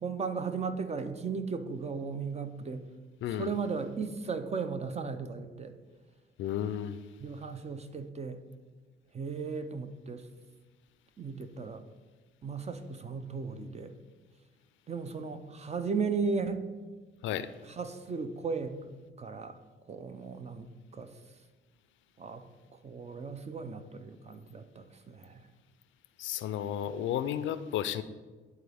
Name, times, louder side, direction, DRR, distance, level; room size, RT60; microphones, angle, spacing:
voice 1, 0.0-2.8 3.4-5.8 7.2-8.4 9.1-10.3 11.2-11.8 12.4-13.9 14.9-16.6 17.7-18.8 19.2-19.6 19.9-21.2 22.2-22.4 22.8-25.5, right 5 dB, 35° right, 9 dB, 0.6 m, -36 dB
voice 2, 3.2-3.5 6.4-7.0 17.2-17.5 26.2-28.0, left 10 dB, 75° left, 13 dB, 0.4 m, -33 dB
10.5 x 4.0 x 3.5 m, 1.3 s
cardioid pair, 90°, 20 cm